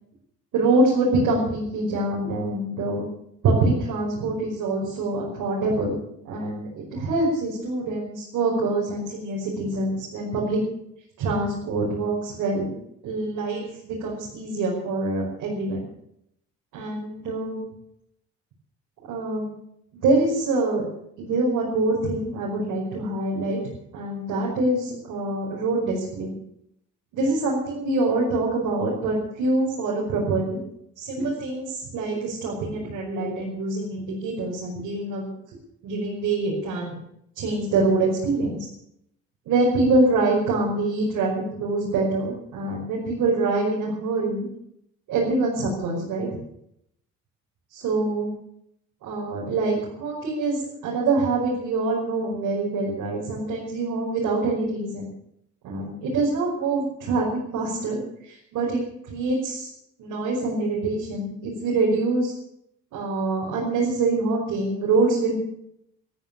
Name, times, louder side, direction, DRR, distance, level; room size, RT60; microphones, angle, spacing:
voice 1, 0.5-3.1 3.4-5.9 6.2-10.6 11.2-12.7 13.0-15.9 16.7-17.6 19.1-19.5 19.9-20.9 21.2-26.4 27.1-30.6 31.0-35.3 35.8-37.0 37.4-38.7 39.5-41.3 41.6-44.5 45.1-46.3 47.7-48.3 49.0-55.1 55.6-57.3 57.5-59.7 60.0-62.3 62.9-65.4, right 2 dB, 90° right, -5 dB, 5.5 m, -25 dB
13.5 x 13.5 x 7.1 m, 0.75 s
cardioid pair, 90°, 30 cm